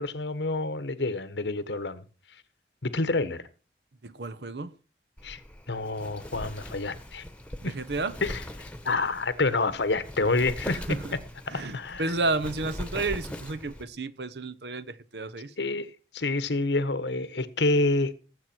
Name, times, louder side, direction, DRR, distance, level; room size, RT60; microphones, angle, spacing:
voice 1, 0.0-2.0 2.8-3.4 5.2-5.4 5.7-7.2 7.6-7.7 8.2-8.4 8.8-10.8 11.5-12.1 15.6-18.1, left 2 dB, 90° left, 1.3 m, -28 dB
voice 2, 4.0-4.7 7.6-8.2 10.7-11.1 11.5-15.5, right 3 dB, 75° right, 1.0 m, -32 dB
Wind, 5.2-13.8, left 1 dB, 5° left, 1.1 m, -41 dB
18.5 x 8.1 x 4.5 m
head